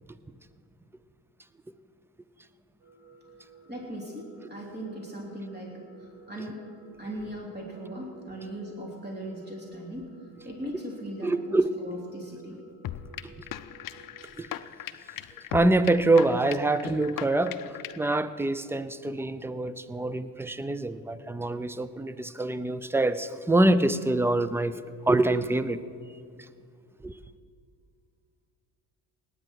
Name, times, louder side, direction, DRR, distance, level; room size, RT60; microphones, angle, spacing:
sound 1, 2.8-14.4, right 4 dB, 75° right, 4.0 m, -54 dB
voice 1, 3.7-6.7 7.0-10.1 10.4-12.6, right 1 dB, 20° right, 3.3 m, -39 dB
voice 2, 11.2-11.7 14.4-14.5 15.5-24.7 25.1-25.8 27.0-27.1, right 2 dB, 5° right, 0.5 m, -25 dB
sound 2, 12.8-18.2, left 12 dB, 50° left, 0.6 m, -39 dB
19.0 x 9.9 x 4.7 m
supercardioid pair, 75°, 44 cm